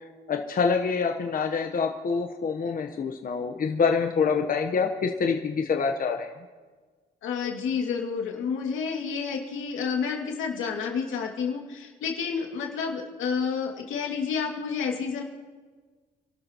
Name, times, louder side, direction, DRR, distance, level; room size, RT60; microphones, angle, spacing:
voice 1, 0.0-6.3, left 5 dB, 45° left, 4 dB, 1.1 m, -26 dB
voice 2, 7.2-15.2, left 6 dB, 85° left, 0 dB, 2.4 m, -30 dB
27.5 x 12.5 x 3.0 m, 1.4 s
cardioid pair, 90°, 20 cm